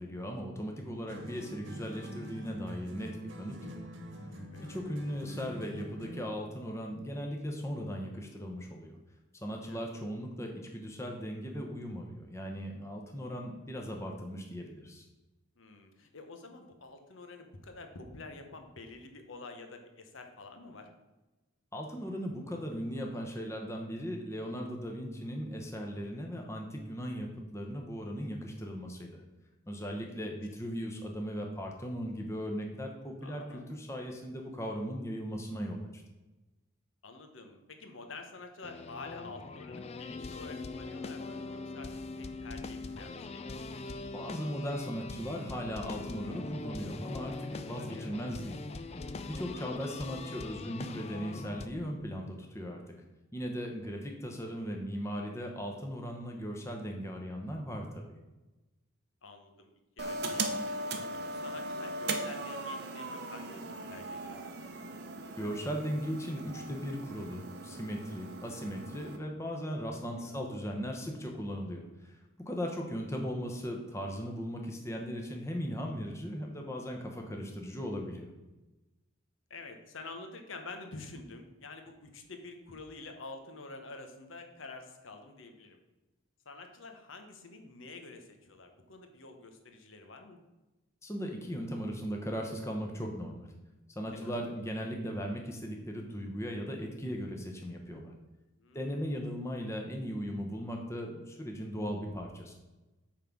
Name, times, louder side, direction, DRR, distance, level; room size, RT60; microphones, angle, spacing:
voice 1, 0.0-3.7 4.7-8.9 9.3-15.0 21.7-29.2 29.7-36.0 44.1-48.6 49.3-52.8 53.3-58.0 65.4-72.2 72.4-78.3 91.0-93.5 94.0-98.1 98.7-102.5, equal, 15° left, 1 dB, 0.9 m, -38 dB
sound 1, 1.1-6.4, equal, 70° right, 1.5 m, -45 dB
voice 2, 15.6-20.9 29.9-30.3 33.2-33.7 37.0-41.9 42.2-43.4 47.9-48.1 53.6-54.0 59.2-59.7 60.0-60.7 61.1-64.5 69.9-70.5 72.7-72.8 79.5-85.8 86.4-90.4 94.1-94.4 98.6-99.1, left 3 dB, 70° left, 5 dB, 1.0 m, -48 dB
sound 2, 38.6-51.7, left 3 dB, 30° left, 0.4 m, -42 dB
sound 3, 60.0-69.2, right 2 dB, 50° right, 0.8 m, -39 dB
8.8 x 3.8 x 6.0 m, 1.1 s
head